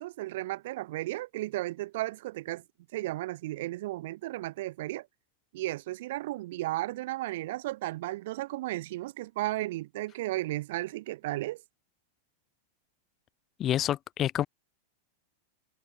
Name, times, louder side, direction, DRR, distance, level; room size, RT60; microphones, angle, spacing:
voice 1, 0.0-2.6 2.9-5.1 5.5-11.6, right 17 dB, 65° right, 0.9 m, -34 dB
voice 2, 13.6-14.5, left 11 dB, 30° left, 0.9 m, -28 dB
hypercardioid pair, 130°, 0 cm